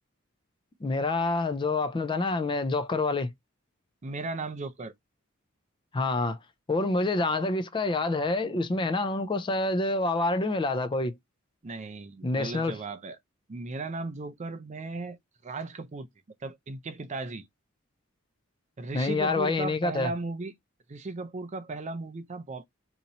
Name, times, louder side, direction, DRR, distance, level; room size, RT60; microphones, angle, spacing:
voice 1, 0.8-3.3 5.9-6.4 6.7-11.2 12.2-12.7 18.9-20.1, left 2 dB, 25° left, 0.4 m, -27 dB
voice 2, 4.0-4.9 11.6-13.2 13.5-15.2 15.4-16.1 16.4-17.5 18.8-20.5 20.9-22.6, right 3 dB, 35° right, 0.5 m, -36 dB
2.9 x 2.6 x 4.0 m
head